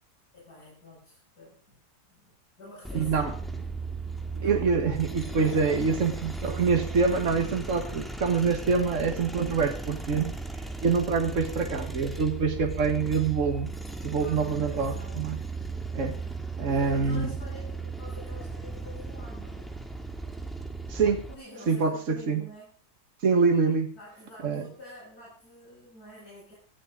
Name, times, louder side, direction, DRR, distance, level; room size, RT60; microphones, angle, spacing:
voice 1, 0.3-1.8 2.1-3.7 4.4-4.6 5.5-5.8 14.2-15.3 16.6-19.7 21.3-22.7 23.9-26.5, left 2 dB, 65° left, -5 dB, 7.4 m, -48 dB
sound 1, 2.8-21.3, right 3 dB, ahead, 1.8 m, -36 dB
voice 2, 2.9-3.3 4.3-10.4 10.8-13.7 14.0-15.4 15.9-16.2 16.6-17.3 20.9-21.2 21.7-22.4 23.2-23.9 24.4-24.7, right 5 dB, 50° right, 4 dB, 2.1 m, -25 dB
18.5 x 14.5 x 3.8 m, 0.37 s
omnidirectional pair, 1.7 m